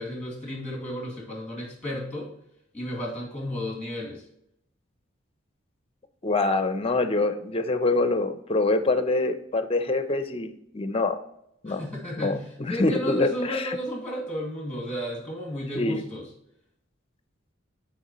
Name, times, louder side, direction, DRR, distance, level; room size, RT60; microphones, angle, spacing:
voice 1, 0.0-2.3 2.7-4.2 11.7-12.4 12.7-16.3, equal, 10° left, -1 dB, 2.3 m, -33 dB
voice 2, 6.2-11.2 11.6-11.9 12.2-13.8 15.7-16.0, left 2 dB, 30° left, 10 dB, 0.6 m, -25 dB
10.5 x 4.5 x 3.1 m, 0.78 s
head